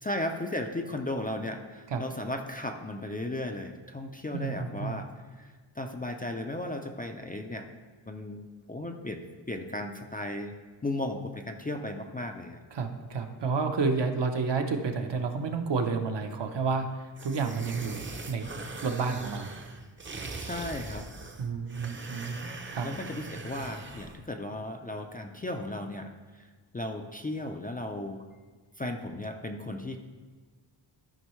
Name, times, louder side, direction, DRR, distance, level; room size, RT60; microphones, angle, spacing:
voice 1, 0.0-5.1 5.4-7.7 8.1-10.5 10.8-12.6 20.4-21.1 22.8-26.1 26.3-26.5 26.7-28.2 28.8-30.0, left 1 dB, 20° left, 3 dB, 0.4 m, -35 dB
voice 2, 4.3-5.0 12.7-18.5 18.8-19.5 21.4-22.9, right 4 dB, 60° right, 5 dB, 0.8 m, -30 dB
sound 1, 17.2-24.2, right 3 dB, 25° right, 0.6 m, -41 dB
13.0 x 5.4 x 3.1 m, 1.4 s
wide cardioid pair, 140°, 47 cm